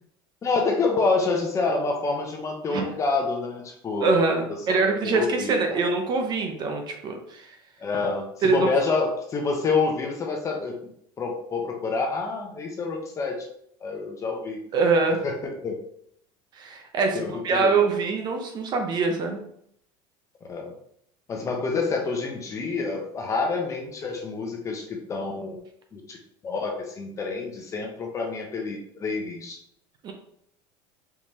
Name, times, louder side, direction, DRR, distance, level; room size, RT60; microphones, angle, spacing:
voice 1, 0.4-4.4 4.7-5.8 7.8-10.8 11.2-13.5 13.8-14.6 15.2-15.4 15.6-15.8 17.1-17.8 20.5-20.8 21.3-25.6 25.9-26.2 26.4-29.6, left 4 dB, 25° left, 1 dB, 0.8 m, -27 dB
voice 2, 4.0-7.6 8.4-8.7 14.7-15.3 16.5-19.4 30.0-30.1, right 4 dB, 40° right, 4 dB, 0.7 m, -24 dB
4.6 x 3.3 x 2.8 m, 0.69 s
cardioid pair, 135°, 12 cm